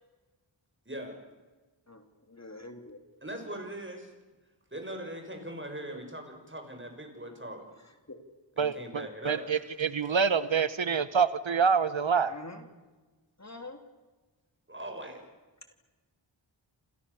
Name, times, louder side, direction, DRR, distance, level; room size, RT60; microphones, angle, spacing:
voice 1, 0.8-1.3 3.2-4.1 4.7-7.6 8.6-9.5 10.0-10.2 14.7-15.3, right 1 dB, 25° right, 4 dB, 6.5 m, -41 dB
voice 2, 1.9-3.0 8.1-8.2 12.2-12.6 13.4-13.8, left 2 dB, 35° left, 6 dB, 2.9 m, -45 dB
voice 3, 8.6-12.4, right 6 dB, 75° right, 14 dB, 1.1 m, -27 dB
28.5 x 28.0 x 7.1 m, 1.2 s
wide cardioid pair, 60°, 46 cm